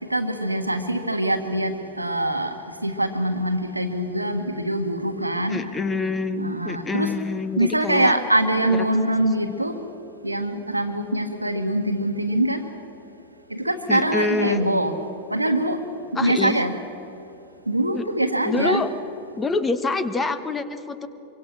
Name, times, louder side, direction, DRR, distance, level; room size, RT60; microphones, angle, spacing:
voice 1, 0.1-5.8 6.3-7.1 7.6-9.8 10.2-12.6 13.5-15.0 15.3-16.8 17.7-18.8, right 1 dB, 85° right, 1.6 m, -24 dB
voice 2, 5.5-8.2 8.7-8.8 9.4-9.5 13.9-14.6 16.1-16.6 17.9-18.0 18.4-18.9 19.4-21.1, left 3 dB, 15° left, 1.3 m, -26 dB
25.0 x 24.0 x 6.3 m
figure-of-eight pair, 90°, 0 cm